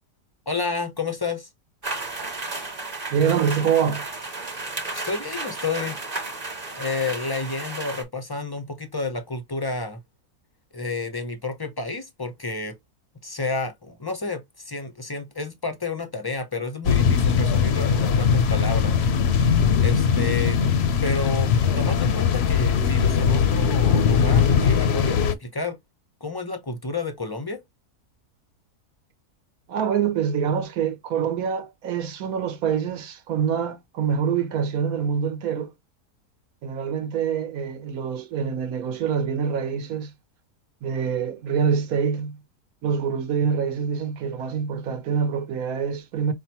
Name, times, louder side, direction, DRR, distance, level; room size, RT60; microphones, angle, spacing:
voice 1, 0.5-1.5 4.9-6.0 6.8-10.0 10.7-12.8 13.2-19.0 19.8-21.5 21.8-25.8 26.2-27.6, left 3 dB, 35° left, 0.3 m, -30 dB
sound 1, 1.8-8.0, right 3 dB, 30° right, 1.1 m, -33 dB
voice 2, 3.1-4.1 29.7-35.7 36.6-40.1 40.8-42.4 42.8-46.3, right 7 dB, 70° right, 1.4 m, -25 dB
sound 2, 16.8-25.3, left 7 dB, 60° left, 0.7 m, -20 dB
5.8 x 2.2 x 2.8 m
omnidirectional pair, 1.6 m